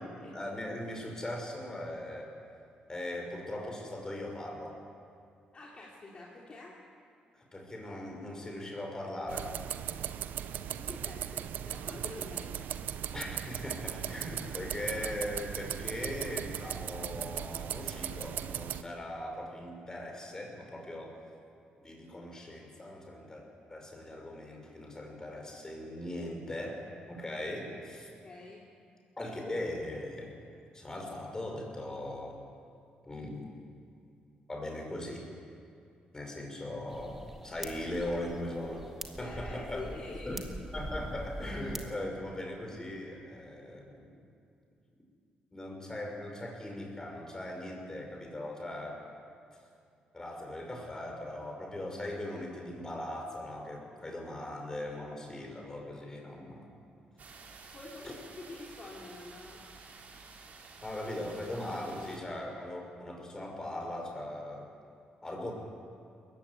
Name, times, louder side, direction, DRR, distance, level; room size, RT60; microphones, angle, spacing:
voice 1, 0.0-2.3 2.9-4.8 7.4-9.5 13.1-21.2 21.8-28.1 29.2-30.3 30.7-32.4 33.0-33.5 34.5-35.3 36.1-38.8 39.2-39.9 40.3-40.4 40.7-44.1 45.5-49.0 50.1-56.7 58.0-58.1 60.8-64.7 65.2-65.5, left 1 dB, 20° left, 1 dB, 5.8 m, -39 dB
voice 2, 5.5-6.8 10.7-12.8 28.1-28.6 39.2-40.4 57.7-59.6, left 3 dB, 40° left, -4 dB, 3.3 m, -46 dB
sound 1, 9.3-18.8, right 10 dB, 80° right, 0.7 m, -38 dB
sound 2, 36.9-41.9, right 1 dB, 10° right, 2.1 m, -43 dB
sound 3, 57.2-62.2, right 4 dB, 60° right, 3.4 m, -52 dB
20.5 x 15.5 x 9.8 m, 2.5 s
cardioid pair, 95°, 3 cm